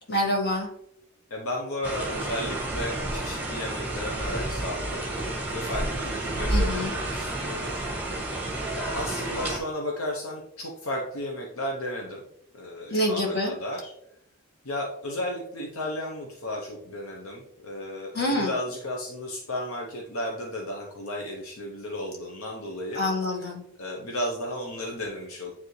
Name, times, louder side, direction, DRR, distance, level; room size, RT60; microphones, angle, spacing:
voice 1, 0.1-0.7 6.5-6.9 12.9-13.5 18.1-18.5 22.9-23.6, left 1 dB, 50° left, -1 dB, 1.9 m, -26 dB
voice 2, 1.3-5.0 5.5-7.8 8.7-12.2 12.5-13.9 14.6-23.0 23.8-25.5, left 1 dB, 75° left, -1 dB, 0.9 m, -34 dB
sound 1, 1.8-9.6, right 1 dB, 10° right, 1.4 m, -30 dB
9.2 x 3.5 x 3.2 m, 0.77 s
head